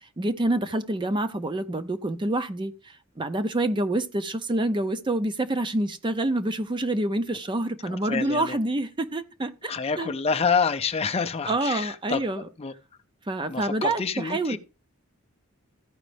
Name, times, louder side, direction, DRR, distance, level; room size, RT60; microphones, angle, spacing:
voice 1, 0.2-9.7 10.0-10.1 11.5-12.4 13.3-14.6, right 1 dB, 20° right, 0.5 m, -27 dB
voice 2, 7.8-8.6 9.7-12.7 13.5-14.6, left 5 dB, 30° left, 0.5 m, -28 dB
14.5 x 5.1 x 3.2 m
head